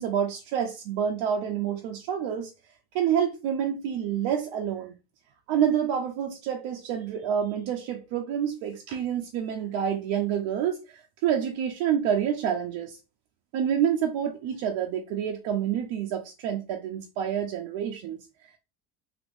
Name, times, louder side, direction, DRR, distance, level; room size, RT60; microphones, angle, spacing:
voice 1, 0.0-2.5 2.9-4.9 5.5-13.0 13.5-18.6, right 9 dB, 70° right, 0.7 m, -28 dB
3.3 x 2.9 x 2.6 m
supercardioid pair, 75°, 48 cm